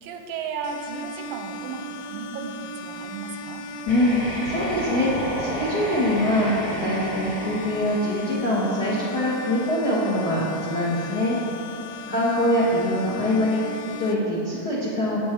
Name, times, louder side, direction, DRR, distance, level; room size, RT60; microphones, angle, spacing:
voice 1, 0.0-3.7 12.1-12.9, right 5 dB, 90° right, 4 dB, 2.4 m, -35 dB
sound 1, 0.6-14.1, left 2 dB, 90° left, 1.7 m, -37 dB
voice 2, 3.8-11.4 12.1-15.2, left 1 dB, 70° left, -7 dB, 0.9 m, -24 dB
sound 2, 3.8-8.8, equal, 25° right, 1.2 m, -32 dB
9.2 x 7.9 x 4.5 m, 2.7 s
omnidirectional pair, 4.0 m